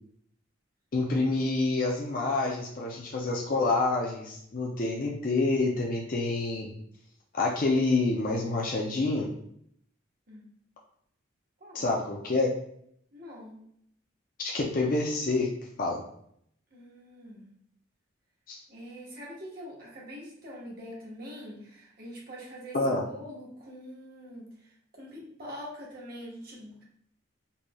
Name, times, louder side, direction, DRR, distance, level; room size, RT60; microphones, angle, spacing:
voice 1, 0.9-6.7 7.3-9.3 11.7-12.5 14.4-15.5 15.8-16.0 18.5-18.6 22.7-23.0, left 3 dB, 45° left, -2 dB, 0.5 m, -27 dB
voice 2, 13.1-13.6 16.7-17.4 18.7-22.8 23.0-24.5 24.9-26.8, equal, 50° right, -4 dB, 1.2 m, -44 dB
4.1 x 3.1 x 2.3 m, 0.70 s
head